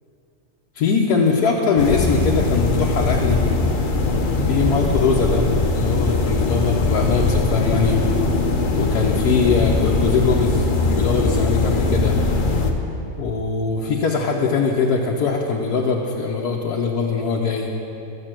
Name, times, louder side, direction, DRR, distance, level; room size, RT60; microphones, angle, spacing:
voice 1, 0.7-3.4 4.5-5.5 5.7-8.0 8.7-12.2 13.2-17.7, left 5 dB, 85° left, -2 dB, 1.4 m, -21 dB
sound 1, 1.8-12.7, left 3 dB, 40° left, 0.8 m, -20 dB
12.5 x 6.7 x 7.6 m, 2.8 s
omnidirectional pair, 1.6 m